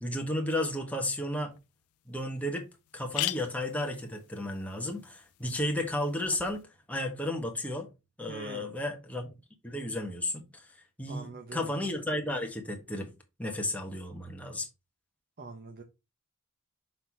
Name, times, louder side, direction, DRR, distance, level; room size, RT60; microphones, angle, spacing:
voice 1, 0.0-1.5 2.1-2.6 2.9-6.6 6.9-7.9 8.2-9.3 9.6-10.7 11.0-13.1 13.4-14.7, left 1 dB, 5° left, 1.4 m, -33 dB
sound 1, 1.6-1.7 2.1-2.2 2.4-2.5 2.9-6.6, left 17 dB, 90° left, 0.4 m, -40 dB
voice 2, 8.3-8.8 11.1-11.8 15.4-15.8, right 3 dB, 45° right, 0.8 m, -44 dB
6.7 x 4.0 x 4.7 m
head